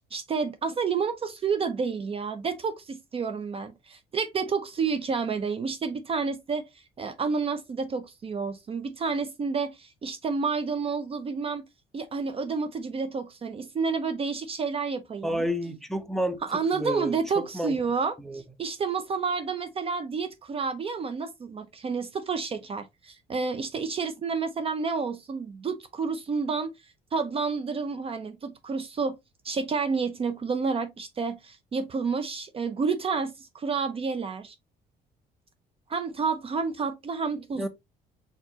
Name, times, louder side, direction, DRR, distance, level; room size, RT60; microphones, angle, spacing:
voice 1, 0.1-6.7 7.0-11.6 11.9-15.4 16.4-26.7 27.1-29.2 29.4-34.6 35.9-37.7, right 5 dB, 35° right, 0.6 m, -30 dB
voice 2, 15.2-16.4 16.7-17.8 18.2-18.4 37.6-37.7, equal, ahead, 0.8 m, -30 dB
4.5 x 4.0 x 2.8 m
cardioid pair, 110°, 17 cm